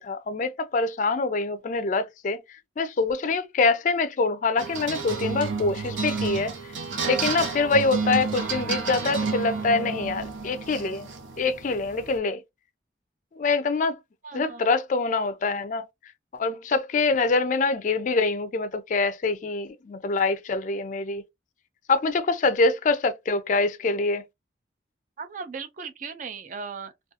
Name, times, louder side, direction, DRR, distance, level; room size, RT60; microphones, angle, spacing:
voice 1, 0.0-2.4 2.8-6.5 7.0-11.1 11.4-12.4 13.4-14.0 14.3-15.8 16.3-21.2 21.9-24.2, left 3 dB, 40° left, 0.3 m, -25 dB
sound 1, 4.6-12.2, right 4 dB, 90° right, 0.7 m, -31 dB
voice 2, 14.2-14.7 25.2-27.1, right 5 dB, 40° right, 0.4 m, -37 dB
2.4 x 2.2 x 2.7 m
head